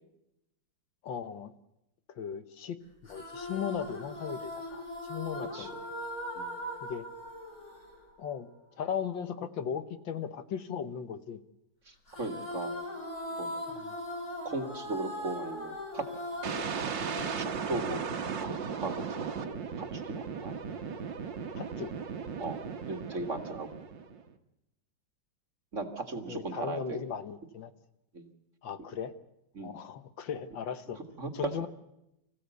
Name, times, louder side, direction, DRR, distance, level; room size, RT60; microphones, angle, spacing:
voice 1, 1.0-1.5 2.2-2.8 3.0-5.7 6.8-7.1 8.2-11.4 13.7-14.0 20.6-20.8 21.5-21.9 26.3-27.7 28.6-29.1 29.6-31.0 31.3-31.7, left 7 dB, 70° left, 11 dB, 1.7 m, -37 dB
sound 1, 3.1-8.6 12.1-18.5, left 1 dB, 35° left, 4.2 m, -40 dB
voice 2, 11.9-12.7 13.4-13.5 14.4-16.1 17.4-18.0 18.4-18.5 18.8-20.5 22.4-22.6 22.8-23.7 25.7-27.0 28.1-28.3 29.6-29.8 31.2-31.3, right 3 dB, 40° right, 5 dB, 2.1 m, -37 dB
sound 2, 16.4-24.3, right 6 dB, 65° right, 2.0 m, -36 dB
26.0 x 15.5 x 8.2 m, 0.86 s
omnidirectional pair, 2.2 m